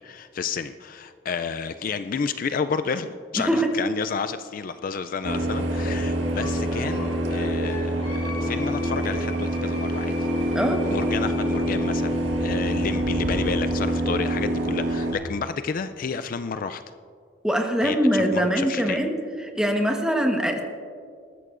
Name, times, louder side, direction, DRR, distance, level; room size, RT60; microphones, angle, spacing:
voice 1, 0.0-10.3 10.8-16.8 17.8-19.0, left 5 dB, 50° left, 10 dB, 0.4 m, -31 dB
voice 2, 3.4-3.7 10.5-10.8 17.4-19.1 19.4-20.6, equal, 5° right, 3 dB, 1.1 m, -22 dB
sound 1, 5.2-15.1, right 1 dB, 90° right, 1.7 m, -26 dB
Wind instrument woodwind instrument, 6.4-12.0, left 1 dB, 30° left, 2.3 m, -41 dB
20.5 x 13.0 x 2.5 m, 2.2 s
head